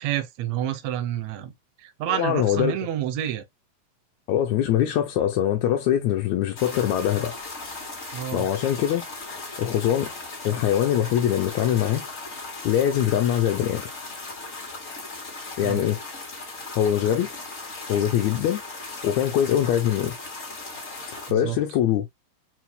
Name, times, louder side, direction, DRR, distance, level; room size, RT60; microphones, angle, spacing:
voice 1, 0.0-1.5 1.8-3.4 8.1-8.5 15.6-15.8 21.3-21.6, right 11 dB, 75° right, 1.9 m, -28 dB
voice 2, 2.1-2.7 4.3-7.3 8.3-9.0 9.6-10.1 10.4-12.1 12.6-13.9 15.6-16.0 16.7-17.3 17.9-18.6 19.0-20.2 21.3-22.1, left 10 dB, 80° left, 1.9 m, -23 dB
sound 1, 6.6-21.3, left 3 dB, 30° left, 1.9 m, -37 dB
4.5 x 4.4 x 2.2 m
omnidirectional pair, 3.3 m